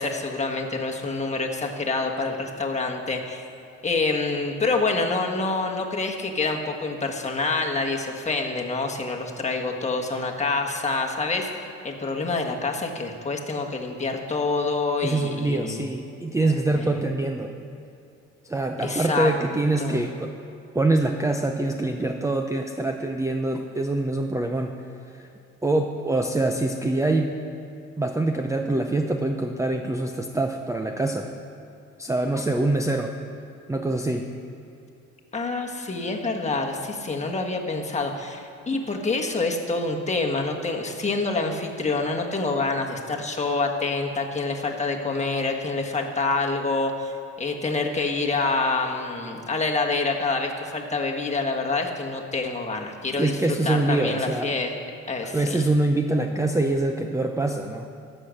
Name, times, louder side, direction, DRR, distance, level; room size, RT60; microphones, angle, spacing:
voice 1, 0.0-3.4 3.8-11.5 11.8-15.9 16.7-16.9 18.8-19.3 19.8-20.0 35.3-53.4 53.6-54.7 55.1-55.7, left 3 dB, 20° left, 1 dB, 1.5 m, -27 dB
voice 2, 15.0-17.6 18.4-20.3 20.7-25.3 25.6-27.4 28.0-31.3 32.0-33.2 33.7-34.3 53.2-54.6 55.2-57.9, right 2 dB, 10° right, 4 dB, 0.6 m, -25 dB
14.5 x 6.6 x 6.4 m, 2.7 s
cardioid pair, 90°, 30 cm